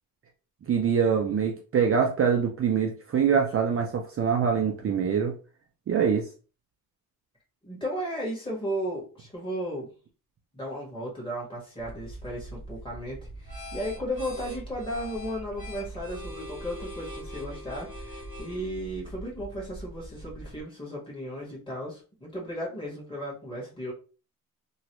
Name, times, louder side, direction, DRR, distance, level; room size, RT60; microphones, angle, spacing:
voice 1, 0.7-5.4 5.9-6.3, right 7 dB, 40° right, 2 dB, 0.5 m, -24 dB
voice 2, 7.6-9.9 10.5-23.9, equal, 15° left, -4 dB, 1.4 m, -35 dB
sound 1, 11.8-20.6, equal, 30° left, 1.3 m, -41 dB
3.0 x 2.3 x 2.9 m, 0.36 s
cardioid pair, 135°, 36 cm